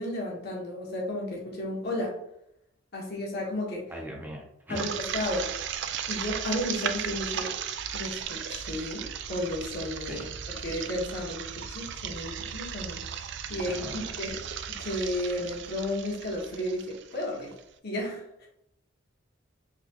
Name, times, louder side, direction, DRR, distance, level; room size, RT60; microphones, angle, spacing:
voice 1, 0.0-2.2 2.9-3.8 4.7-5.5 6.1-7.5 7.9-10.3 10.6-14.4 14.8-17.5 17.8-18.5, left 1 dB, 55° left, -3 dB, 1.3 m, -33 dB
voice 2, 3.9-4.9 10.1-10.3 13.7-14.0, right 1 dB, 10° right, -1 dB, 0.6 m, -39 dB
sound 1, 4.8-17.6, right 8 dB, 60° right, 0.3 m, -36 dB
4.0 x 2.9 x 2.9 m, 0.79 s
head